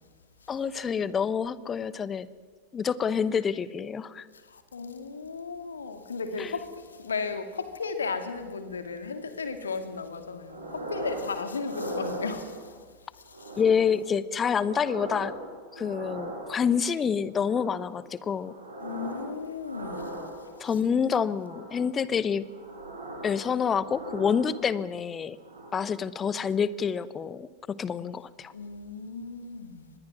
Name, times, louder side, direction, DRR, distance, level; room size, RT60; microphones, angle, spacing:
voice 1, 0.5-2.3 2.7-4.3 6.4-6.5 13.6-15.3 15.7-18.5 20.6-22.4 23.2-25.4 25.7-28.5, left 7 dB, 20° left, 1.0 m, -27 dB
voice 2, 4.3-12.8 13.1-13.6 18.8-20.5 28.5-29.9, left 4 dB, 70° left, 2.4 m, -35 dB
sound 1, 10.5-11.3 11.6-12.8 13.3-13.9 14.3-16.8 17.3-17.9 18.3-19.3 19.6-20.7 21.3-21.9 22.4-24.9 25.3-25.9 26.3-26.5, right 1 dB, 75° right, 6.9 m, -40 dB
25.0 x 20.5 x 6.2 m
figure-of-eight pair, 90°, 0 cm